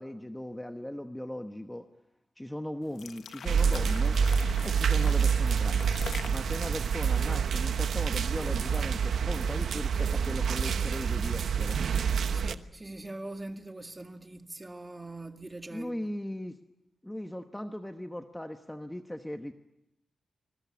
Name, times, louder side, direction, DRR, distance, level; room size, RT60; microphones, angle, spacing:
voice 1, 0.0-1.9 2.4-4.2 4.6-5.9 6.3-11.8 15.7-16.6 17.0-19.5, left 1 dB, 5° left, 1.1 m, -38 dB
sound 1, 2.8-8.1, left 6 dB, 80° left, 1.3 m, -45 dB
sound 2, 3.5-12.5, right 6 dB, 80° right, 1.0 m, -27 dB
voice 2, 12.3-16.0, right 2 dB, 20° right, 1.9 m, -42 dB
25.5 x 22.5 x 8.5 m
wide cardioid pair, 130°, 0 cm